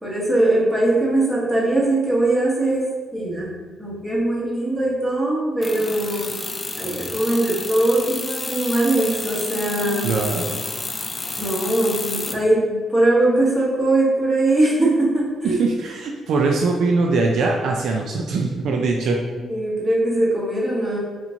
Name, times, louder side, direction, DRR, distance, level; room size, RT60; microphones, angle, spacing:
voice 1, 0.0-3.5 3.8-6.4 6.8-10.1 11.4-15.6 19.3-21.0, right 1 dB, 15° right, -6 dB, 1.4 m, -21 dB
sound 1, 5.6-12.4, left 3 dB, 25° left, 0.3 m, -30 dB
voice 2, 10.0-10.6 15.4-19.2, right 3 dB, 70° right, 1 dB, 0.4 m, -22 dB
4.1 x 2.9 x 2.7 m, 1.4 s
cardioid pair, 90°, 0 cm